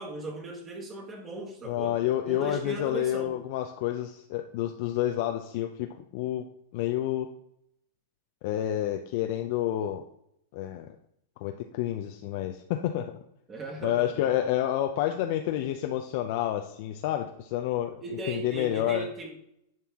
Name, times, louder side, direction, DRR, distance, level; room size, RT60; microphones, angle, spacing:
voice 1, 0.0-2.0 2.3-3.3 13.5-14.3 18.0-19.3, right 2 dB, 20° right, 2 dB, 1.8 m, -37 dB
voice 2, 1.7-6.4 6.7-7.3 8.4-10.0 10.5-11.0 11.4-13.2 13.8-19.1, left 12 dB, 55° left, 5 dB, 0.5 m, -29 dB
10.5 x 4.4 x 3.6 m, 0.76 s
hypercardioid pair, 130°, 0 cm